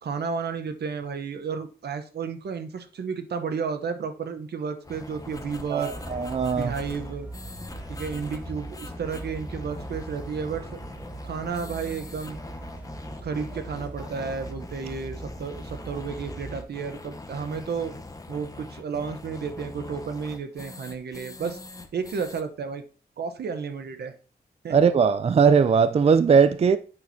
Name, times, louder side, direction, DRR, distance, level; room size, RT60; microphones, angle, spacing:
voice 1, 0.0-5.9 6.5-7.3 7.9-10.8 11.2-12.4 13.2-17.9 18.3-21.6 21.9-22.8 23.2-24.1 24.6-24.8, right 6 dB, 80° right, 0.8 m, -32 dB
sound 1, 4.8-22.4, left 2 dB, 20° left, 0.8 m, -42 dB
voice 2, 5.7-6.7 24.7-26.8, right 6 dB, 40° right, 0.4 m, -19 dB
sound 2, 5.9-16.6, right 1 dB, 10° right, 1.6 m, -40 dB
8.7 x 6.0 x 2.7 m
wide cardioid pair, 90°, 17 cm